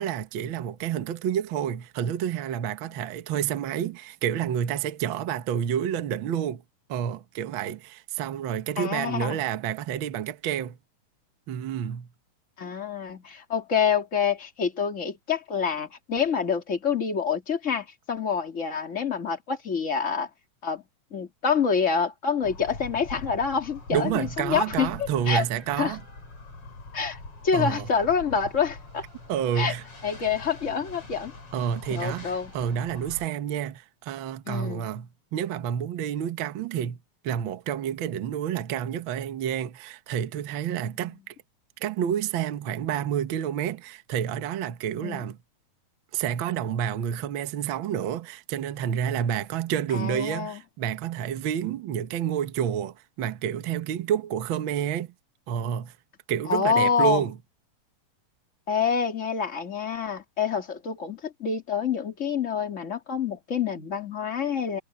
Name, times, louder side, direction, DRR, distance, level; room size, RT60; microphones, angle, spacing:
voice 1, 0.0-6.6 6.9-10.8 11.5-12.1 23.9-26.0 27.5-27.9 29.3-29.8 31.5-37.0 37.2-41.3 41.8-45.4 46.1-55.1 55.5-55.9 56.3-57.4, right 9 dB, 85° right, 1.1 m, -29 dB
voice 2, 8.8-9.4 12.6-20.3 20.6-20.8 21.1-24.9 25.3-25.4 25.8-26.0 26.9-27.2 27.4-29.0 29.6-29.7 30.0-31.3 31.9-32.5 34.5-34.9 45.0-45.2 49.9-50.6 56.5-57.2 58.7-64.8, left 6 dB, 25° left, 2.3 m, -27 dB
sound 1, 22.4-33.3, left 2 dB, 40° left, 6.9 m, -43 dB
omnidirectional pair, 4.0 m